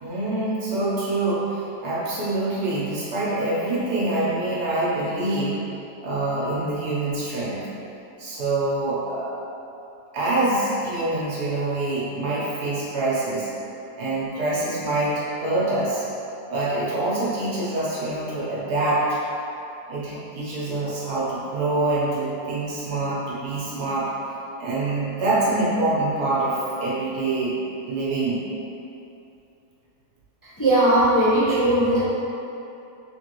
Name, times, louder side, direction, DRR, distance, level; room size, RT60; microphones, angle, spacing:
voice 1, 0.0-5.6 6.0-7.7 8.2-9.3 10.1-13.5 14.0-16.0 16.5-19.2 19.9-24.1 24.6-27.6 27.9-28.4, right 2 dB, 70° right, -7 dB, 1.4 m, -25 dB
voice 2, 30.4-32.0, right 1 dB, 20° left, -12 dB, 0.5 m, -19 dB
3.7 x 3.5 x 3.0 m, 2.8 s
omnidirectional pair, 1.7 m